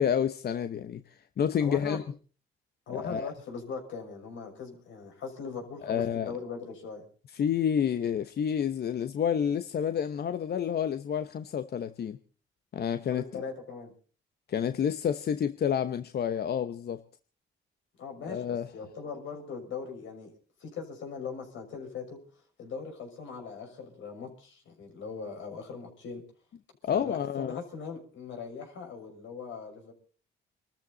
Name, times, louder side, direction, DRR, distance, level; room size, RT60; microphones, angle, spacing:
voice 1, 0.0-2.0 2.9-3.3 5.8-6.3 7.3-12.2 12.7-13.3 14.5-17.0 18.2-18.7 26.8-27.6, left 8 dB, 55° left, 0.9 m, -29 dB
voice 2, 1.6-2.0 2.9-7.0 13.1-13.9 18.0-20.3 20.6-22.2 22.6-26.2 26.9-29.9, left 5 dB, 75° left, 6.3 m, -40 dB
26.0 x 13.5 x 4.0 m
cardioid pair, 90°, 20 cm